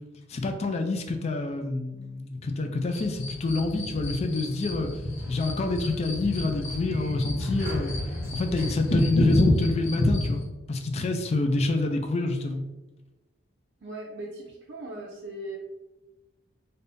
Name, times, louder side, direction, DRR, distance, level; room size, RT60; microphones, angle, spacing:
voice 1, 0.3-4.9 5.3-7.9 8.3-10.4 10.7-12.6, left 2 dB, 35° left, 5 dB, 0.3 m, -28 dB
sound 1, 2.9-10.4, left 1 dB, 75° left, 0.8 m, -28 dB
Sliding door, 4.2-9.8, equal, 15° right, 0.8 m, -45 dB
voice 2, 13.8-15.6, right 1 dB, 60° right, -4 dB, 0.5 m, -38 dB
3.4 x 2.6 x 2.6 m, 1.1 s
head